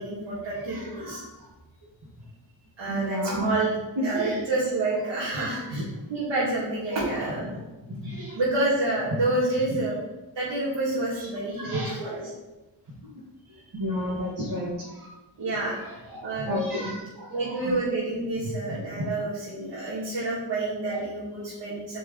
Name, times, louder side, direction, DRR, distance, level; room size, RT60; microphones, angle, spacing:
voice 1, 0.0-1.2 2.8-3.8 4.0-5.8 6.1-7.5 8.3-9.9 10.3-12.2 15.4-15.8 16.2-16.6 17.3-22.0, right 2 dB, 70° right, -8 dB, 2.6 m, -28 dB
voice 2, 0.6-1.5 2.9-3.5 4.0-4.4 5.3-5.8 6.9-7.0 8.0-8.4 11.2-11.3 11.6-12.3 13.7-15.1 15.8-17.7 18.4-18.5 19.0-19.1, left 1 dB, 45° right, -9 dB, 2.5 m, -32 dB
9.2 x 5.3 x 3.5 m, 1.1 s
wide cardioid pair, 125°, 46 cm